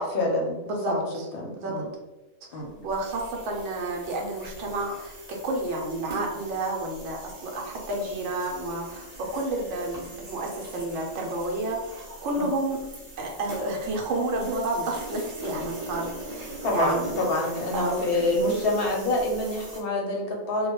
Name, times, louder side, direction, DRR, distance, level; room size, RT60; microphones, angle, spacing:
voice 1, 0.0-1.0 1.3-1.9 2.5-2.7 12.3-12.5 16.6-20.7, left 2 dB, 60° left, -1 dB, 0.7 m, -27 dB
voice 2, 0.7-1.3 1.6-1.9 2.5-12.9 13.2-17.3 17.7-18.1, right 2 dB, 70° right, 1 dB, 0.9 m, -30 dB
sound 1, 2.9-19.8, right 1 dB, 40° right, 0.6 m, -42 dB
2.2 x 2.2 x 2.9 m, 1.1 s
omnidirectional pair, 1.3 m